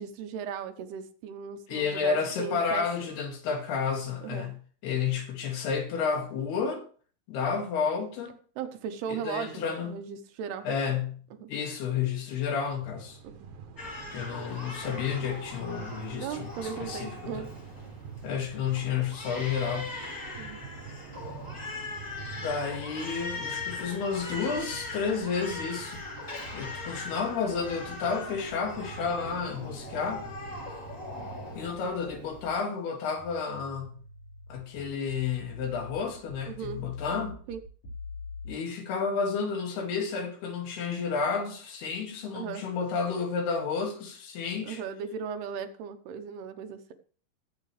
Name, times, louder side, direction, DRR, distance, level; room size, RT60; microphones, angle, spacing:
voice 1, 0.0-3.1 4.2-4.5 8.6-10.7 11.3-11.5 13.2-13.5 16.2-17.5 20.4-20.6 36.5-36.8 37.5-37.6 42.3-42.6 44.6-46.9, right 7 dB, 85° right, 3.2 m, -37 dB
voice 2, 1.7-6.8 7.3-8.4 9.1-10.0 10.6-13.2 14.1-16.5 16.8-17.5 18.2-19.9 22.3-26.0 26.5-30.2 31.5-34.0 34.5-37.4 38.5-44.8, left 6 dB, 80° left, 4.2 m, -31 dB
sound 1, 12.6-31.7, right 6 dB, 65° right, 2.2 m, -46 dB
Crying sobbing, 13.8-32.6, left 3 dB, 25° left, 2.7 m, -40 dB
sound 2, 33.2-38.5, left 4 dB, 65° left, 6.7 m, -44 dB
18.5 x 8.0 x 3.3 m
omnidirectional pair, 4.5 m